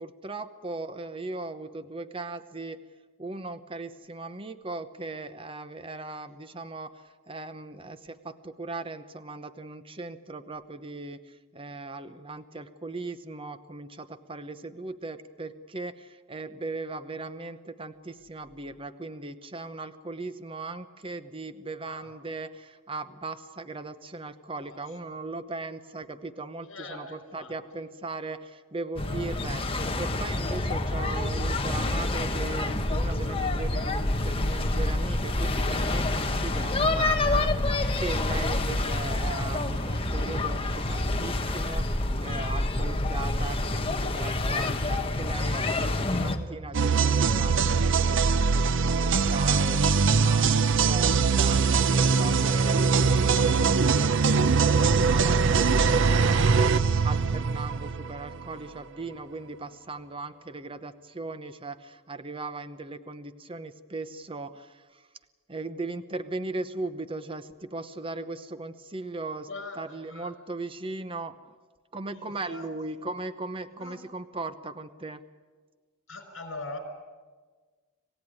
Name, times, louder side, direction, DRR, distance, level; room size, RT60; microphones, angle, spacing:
voice 1, 0.0-2.8 3.2-65.0 65.5-69.5 69.8-71.4 71.9-75.2, right 3 dB, 25° right, 11 dB, 0.9 m, -38 dB
voice 2, 26.7-27.5 69.5-70.3 72.1-72.7 73.8-74.0 76.1-76.8, left 3 dB, 65° left, 7 dB, 5.5 m, -42 dB
sound 1, 29.0-46.4, left 2 dB, 25° left, 1.4 m, -27 dB
sound 2, 46.7-58.5, right 5 dB, 60° right, 0.6 m, -22 dB
27.0 x 16.5 x 9.6 m, 1.4 s
head